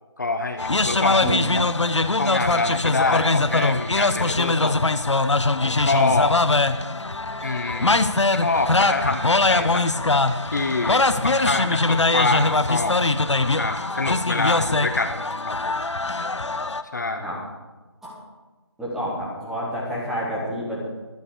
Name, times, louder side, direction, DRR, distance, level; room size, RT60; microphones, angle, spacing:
voice 1, 0.2-1.6 2.2-4.8 5.6-6.4 7.4-8.0 8.3-9.9 10.5-13.0 13.6-15.2 15.5-15.8 16.9-17.3, left 3 dB, 40° left, 7 dB, 0.6 m, -26 dB
sound 1, 0.6-16.8, left 3 dB, 80° left, 0.9 m, -22 dB
voice 2, 18.8-20.8, equal, ahead, -7 dB, 1.7 m, -29 dB
12.0 x 9.5 x 6.7 m, 1.2 s
figure-of-eight pair, 165°, 15 cm